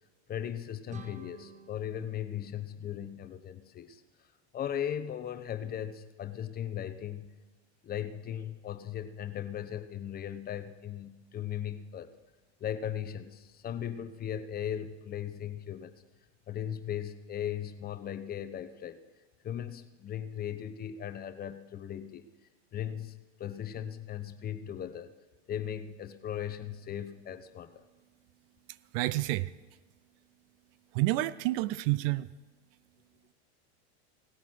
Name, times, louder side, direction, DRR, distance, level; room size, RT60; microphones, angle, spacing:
voice 1, 0.3-4.0 4.5-7.3 7.8-12.1 12.6-16.0 16.5-19.0 19.4-22.3 22.7-25.1 25.5-27.8, left 10 dB, 25° left, 11 dB, 0.8 m, -38 dB
sound 1, 0.9-3.7, right 6 dB, 20° right, 0.9 m, -53 dB
voice 2, 28.9-29.5 30.9-32.3, right 18 dB, 55° right, 19 dB, 0.5 m, -29 dB
17.5 x 8.4 x 6.1 m, 1.2 s
supercardioid pair, 120°, 34 cm